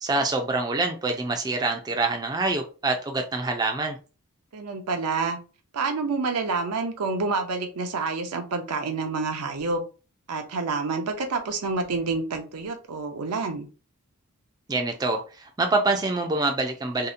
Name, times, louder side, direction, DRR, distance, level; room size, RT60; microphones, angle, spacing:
voice 1, 0.0-4.0 14.7-17.1, right 3 dB, 15° right, 3 dB, 0.3 m, -26 dB
voice 2, 4.5-5.4 5.7-9.8 10.3-13.7, right 4 dB, 85° right, 5 dB, 0.6 m, -28 dB
2.7 x 2.1 x 2.5 m, 0.34 s
head